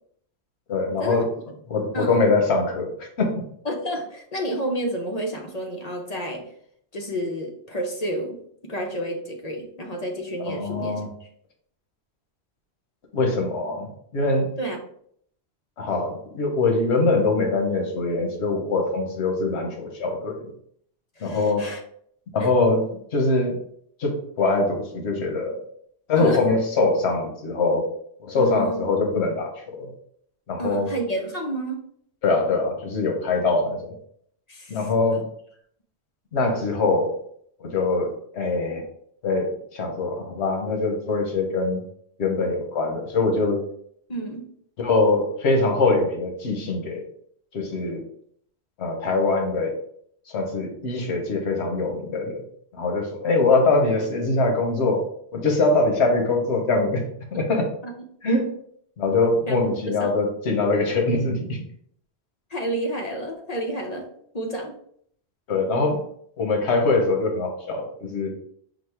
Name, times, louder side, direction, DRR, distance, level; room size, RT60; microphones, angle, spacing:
voice 1, 0.7-1.3 1.7-3.5 10.4-11.1 13.1-14.5 15.8-20.5 21.2-21.7 22.3-22.8 23.1-23.6 24.0-25.6 26.1-27.9 28.2-29.5 29.8-29.9 30.5-30.9 32.2-33.9 34.7-35.2 36.3-37.1 37.6-38.8 39.2-41.8 42.2-43.6 44.8-47.0 47.5-48.0 48.8-49.7 50.3-52.4 52.7-55.0 55.3-57.0 57.3-57.7 58.2-58.5 59.0-61.6 65.5-66.0 66.4-68.3, left 3 dB, 85° left, 2 dB, 1.1 m, -23 dB
voice 2, 3.6-6.4 6.9-8.4 8.7-11.0 14.6-14.8 21.2-21.8 22.4-22.5 26.2-26.4 28.4-28.8 30.6-31.8 34.5-34.9 44.1-44.5 53.3-53.4 57.3-57.4 59.5-59.6 60.0-60.1 62.5-64.1 64.3-64.7, right 1 dB, 45° left, 1 dB, 0.7 m, -30 dB
5.0 x 2.1 x 4.4 m, 0.66 s
omnidirectional pair, 1.1 m